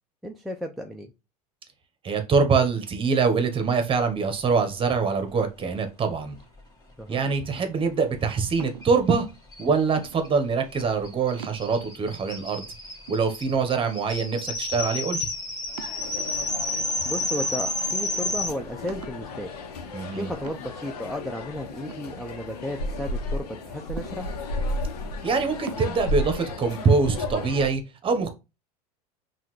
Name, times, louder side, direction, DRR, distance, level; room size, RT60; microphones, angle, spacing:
voice 1, 0.2-1.1 7.0-7.2 17.0-19.5 20.1-24.3, equal, ahead, 2 dB, 0.5 m, -34 dB
voice 2, 2.0-6.4 7.1-9.3 9.6-12.7 13.1-15.3 19.9-20.3 25.2-28.3, right 5 dB, 25° right, 7 dB, 1.1 m, -24 dB
sound 1, 7.2-7.7 8.6-9.0 10.0-10.5 11.0-11.1 11.4-12.0 12.6-12.7 13.1-13.8 14.3-14.7 15.8-16.5 17.2-17.8 18.2-18.3 18.9-19.3 20.4-20.9 21.9-22.8 24.0-24.6 25.7-25.9, right 9 dB, 85° right, 0.5 m, -43 dB
sound 2, 8.8-8.9 9.1-9.2 9.5-18.5, left 2 dB, 20° left, 1.5 m, -31 dB
sound 3, 15.7-27.7, left 2 dB, 75° left, 0.9 m, -34 dB
5.5 x 2.5 x 3.1 m, 0.26 s
hypercardioid pair, 90°, 20 cm